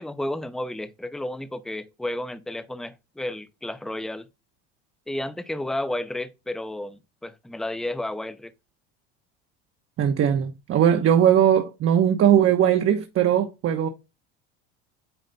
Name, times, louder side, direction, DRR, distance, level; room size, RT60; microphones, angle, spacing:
voice 1, 0.0-4.3 5.1-8.5, left 1 dB, ahead, 0.8 m, -32 dB
voice 2, 10.0-13.9, right 9 dB, 45° right, 1.2 m, -19 dB
9.2 x 3.3 x 4.1 m
supercardioid pair, 90°, 31 cm